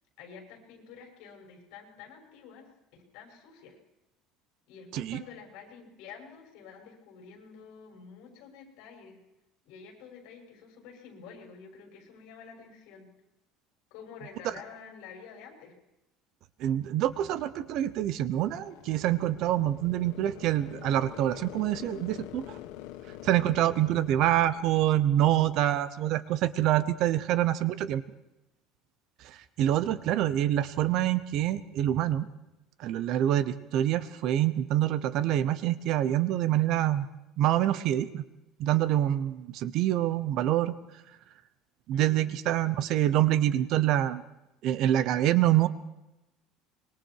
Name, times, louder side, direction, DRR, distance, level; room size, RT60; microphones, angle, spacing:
voice 1, 0.2-2.7 3.1-3.8 4.7-9.2 9.6-13.1 13.9-15.7 27.0-27.4 30.0-30.1 41.9-42.4, left 6 dB, 60° left, 2 dB, 6.5 m, -49 dB
voice 2, 16.6-22.6 23.2-28.0 29.2-32.3 32.8-37.1 37.4-38.2 38.6-40.7 41.9-44.2 44.6-45.7, right 12 dB, 45° right, 15 dB, 0.9 m, -26 dB
sound 1, 18.5-24.7, left 13 dB, 80° left, 1.5 m, -46 dB
25.5 x 22.5 x 4.8 m, 0.92 s
cardioid pair, 180°, 0 cm